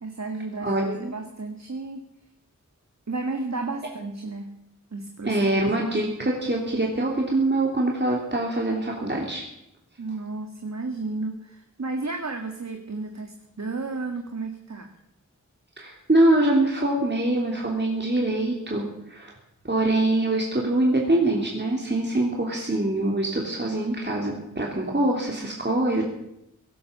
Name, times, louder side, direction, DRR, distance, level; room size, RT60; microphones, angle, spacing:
voice 1, 0.0-0.7 1.0-2.0 3.1-4.5 4.9-5.4 10.0-14.9, right 3 dB, 60° right, 4 dB, 1.9 m, -32 dB
voice 2, 0.6-1.1 5.2-9.4 15.8-19.3 19.6-26.0, right 1 dB, 35° right, -1 dB, 3.3 m, -24 dB
17.5 x 11.5 x 6.9 m, 0.83 s
wide cardioid pair, 50°, 31 cm